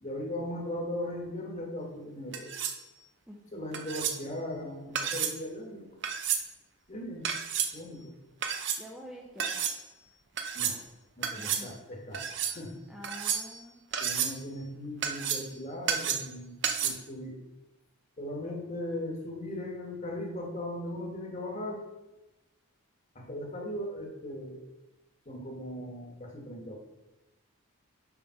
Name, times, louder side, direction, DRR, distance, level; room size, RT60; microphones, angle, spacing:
voice 1, 0.0-2.6 3.5-5.9 6.9-7.3 7.7-8.1 10.5-10.8 11.2-12.8 14.0-17.4 18.2-21.8 23.1-24.6 25.2-26.8, left 1 dB, 30° left, 0 dB, 1.5 m, -38 dB
sound 1, 2.3-2.8 3.7-4.2 5.0-5.4 6.0-6.4 7.2-7.7 8.4-8.8 9.4-9.8 10.4-10.8 11.2-11.7 12.1-12.6 13.0-13.6 13.9-14.4 15.0-15.5 15.9-16.3 16.6-16.9, right 8 dB, 50° right, 0.7 m, -31 dB
voice 2, 3.3-3.9 8.8-9.6 11.4-11.7 12.9-13.9, equal, 5° right, -2 dB, 0.6 m, -47 dB
7.3 x 5.0 x 5.7 m, 1.0 s
head